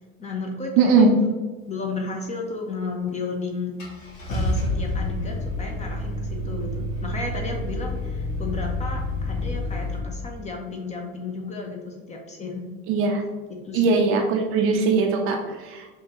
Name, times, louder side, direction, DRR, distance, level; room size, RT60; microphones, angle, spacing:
voice 1, 0.2-1.1 1.7-3.9 4.3-12.6 13.5-14.0, left 3 dB, 15° left, 1 dB, 0.5 m, -33 dB
voice 2, 0.8-1.1 12.9-13.2 13.7-15.9, right 4 dB, 35° right, 2 dB, 0.5 m, -20 dB
Car / Engine starting, 3.1-3.2 3.8-10.0, left 1 dB, 65° left, 1.1 m, -28 dB
5.5 x 2.2 x 2.9 m, 1.3 s
figure-of-eight pair, 75°, 41 cm